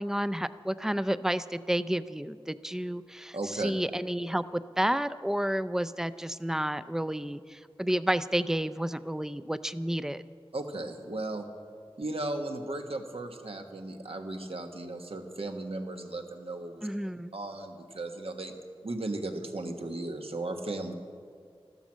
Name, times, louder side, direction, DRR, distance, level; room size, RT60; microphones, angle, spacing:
voice 1, 0.0-10.2 16.8-17.3, right 1 dB, 5° right, 14 dB, 0.5 m, -31 dB
voice 2, 3.3-3.7 10.5-11.4 12.0-16.9 17.3-18.5 18.8-20.9, right 2 dB, 75° right, 4 dB, 1.4 m, -36 dB
13.5 x 12.5 x 7.4 m, 2.2 s
wide cardioid pair, 60°, 10 cm